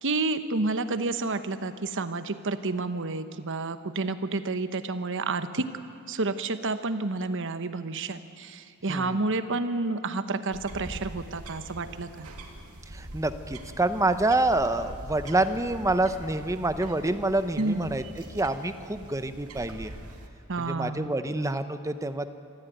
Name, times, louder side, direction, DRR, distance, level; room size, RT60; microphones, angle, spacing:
voice 1, 0.0-5.7 6.1-12.3 17.6-18.0 20.5-21.1, right 3 dB, 60° right, 11 dB, 1.1 m, -30 dB
voice 2, 8.9-9.2 12.9-18.0 18.3-19.9 20.6-22.3, right 2 dB, 15° right, 10 dB, 0.8 m, -27 dB
sound 1, 10.5-20.3, right 1 dB, 85° right, 2.3 m, -43 dB
25.5 x 14.0 x 9.2 m, 2.6 s
head